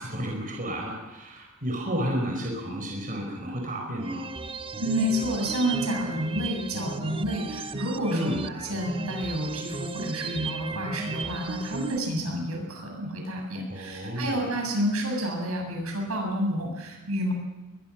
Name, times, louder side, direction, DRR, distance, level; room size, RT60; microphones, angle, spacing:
voice 1, 0.0-4.3 8.1-8.5 13.7-14.5, equal, 40° right, 0 dB, 5.0 m, -31 dB
sound 1, 4.0-12.0, right 4 dB, 25° right, 0.8 m, -36 dB
voice 2, 4.8-17.3, equal, 80° right, 1 dB, 7.7 m, -29 dB
22.5 x 21.5 x 6.2 m, 1.0 s
head